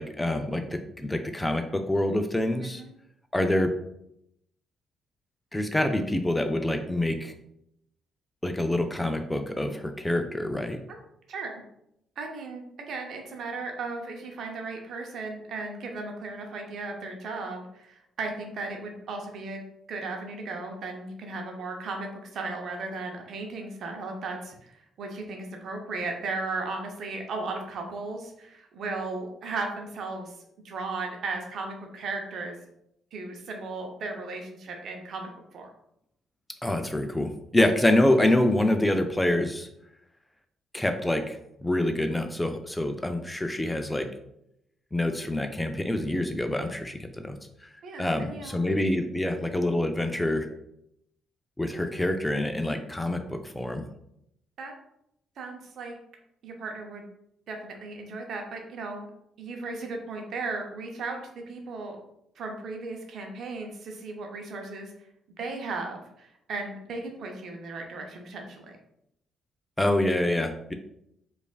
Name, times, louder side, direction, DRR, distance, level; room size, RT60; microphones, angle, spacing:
voice 1, 0.0-2.8 3.3-3.7 5.5-7.3 8.4-10.8 36.6-39.7 40.7-44.1 44.9-47.4 48.0-50.5 51.6-53.8 69.8-70.7, left 1 dB, 15° left, 7 dB, 0.5 m, -26 dB
voice 2, 11.3-11.6 12.2-19.6 19.9-30.4 30.6-32.5 33.1-35.7 47.8-48.7 54.6-54.7 55.4-56.0 56.4-57.0 57.5-59.1 59.4-61.2 61.5-62.0 62.4-64.9 65.4-68.7, right 3 dB, 60° right, 2 dB, 0.7 m, -36 dB
4.8 x 2.5 x 2.4 m, 0.77 s
hypercardioid pair, 45°, 0 cm